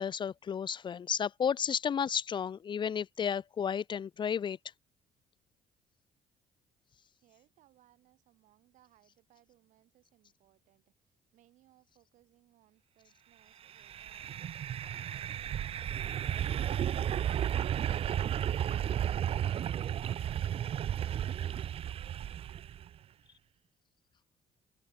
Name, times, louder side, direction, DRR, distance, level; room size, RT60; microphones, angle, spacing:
voice 1, 0.0-4.6, left 7 dB, 35° left, 0.5 m, -32 dB
voice 2, 7.1-14.5 14.8-23.3, right 14 dB, 75° right, 6.1 m, -67 dB
sound 1, 13.7-22.9, right 10 dB, 50° right, 0.5 m, -33 dB
cardioid pair, 85°, 13 cm